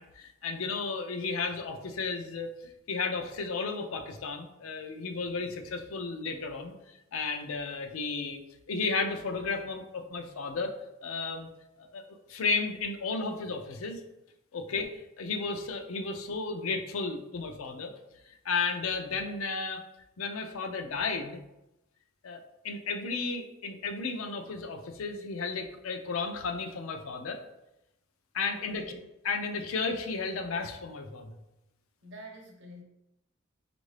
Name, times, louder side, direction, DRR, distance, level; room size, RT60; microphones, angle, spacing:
voice 1, 0.0-2.5 2.9-6.7 7.1-8.4 8.7-10.7 11.0-11.5 11.8-14.0 14.5-17.9 18.3-19.8 20.2-21.4 22.2-27.4 28.3-28.9 29.2-31.4, left 4 dB, 90° left, 6 dB, 0.5 m, -33 dB
voice 2, 28.6-29.0 32.0-32.8, equal, 60° right, 1 dB, 0.8 m, -47 dB
5.3 x 2.5 x 3.2 m, 0.90 s
head